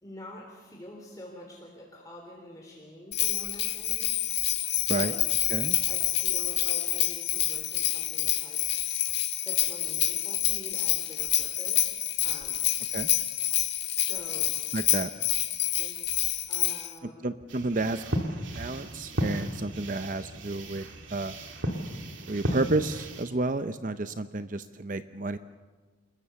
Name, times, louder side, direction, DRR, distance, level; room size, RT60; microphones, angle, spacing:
voice 1, 0.0-4.1 4.9-5.2 5.9-8.7 9.4-12.7 13.9-14.5 15.8-17.2, equal, 15° left, -1 dB, 3.4 m, -46 dB
Bell, 3.1-16.9, left 14 dB, 55° left, 1.8 m, -28 dB
voice 2, 14.7-15.1 17.2-18.2 18.5-21.4 22.3-25.4, right 2 dB, 40° right, 11 dB, 0.7 m, -31 dB
sound 1, 17.5-23.3, equal, 70° right, 2.6 m, -34 dB
28.0 x 21.5 x 7.0 m, 1.4 s
head